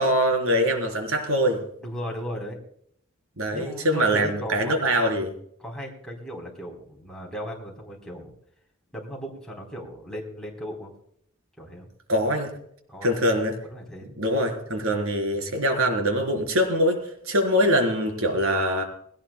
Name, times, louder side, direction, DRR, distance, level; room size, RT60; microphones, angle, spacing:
voice 1, 0.0-1.6 3.4-5.3 12.1-12.5 13.0-13.5 14.2-18.8, equal, 90° right, 3 dB, 3.9 m, -23 dB
voice 2, 1.8-2.6 3.5-4.8 5.6-8.3 8.9-10.9 11.6-11.9 12.9-13.2 13.6-14.1, equal, 5° left, -3 dB, 3.6 m, -36 dB
21.0 x 17.5 x 2.2 m, 0.68 s
head